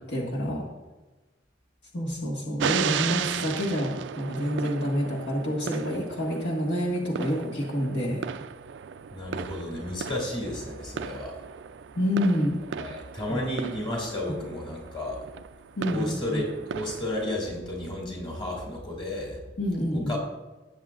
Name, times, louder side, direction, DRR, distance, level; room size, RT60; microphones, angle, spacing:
voice 1, 0.1-0.7 1.9-8.2 12.0-12.6 13.3-13.4 15.8-16.4 19.6-20.2, equal, 70° left, -3 dB, 1.7 m, -28 dB
sound 1, 2.6-17.3, right 8 dB, 75° right, 0.4 m, -36 dB
voice 2, 9.1-11.3 12.8-15.2 15.9-19.4 19.9-20.2, left 1 dB, 30° left, 0 dB, 2.5 m, -32 dB
17.5 x 7.7 x 2.5 m, 1.2 s
head